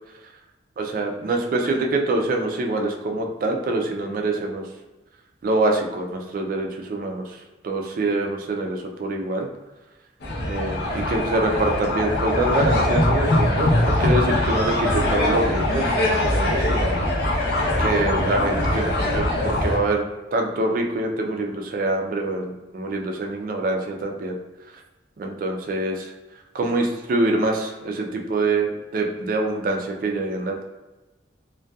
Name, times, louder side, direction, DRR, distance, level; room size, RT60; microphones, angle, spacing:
voice 1, 0.8-4.6 5.4-7.3 7.6-9.5 10.4-17.0 17.8-20.1 20.3-24.4 25.2-26.1 26.5-30.6, right 2 dB, 50° right, 2 dB, 0.3 m, -25 dB
sound 1, 10.2-19.8, left 1 dB, 60° left, 0.6 m, -22 dB
2.6 x 2.1 x 2.2 m, 1.1 s
head